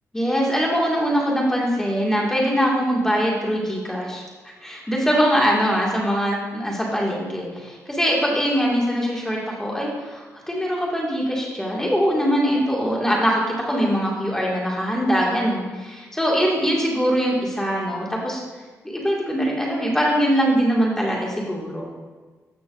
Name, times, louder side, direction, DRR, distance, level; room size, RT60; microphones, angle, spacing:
voice 1, 0.1-4.2 4.6-18.4 18.8-21.9, equal, 10° left, -3 dB, 2.0 m, -22 dB
13.5 x 6.1 x 2.6 m, 1.3 s
cardioid pair, 100°, 6 cm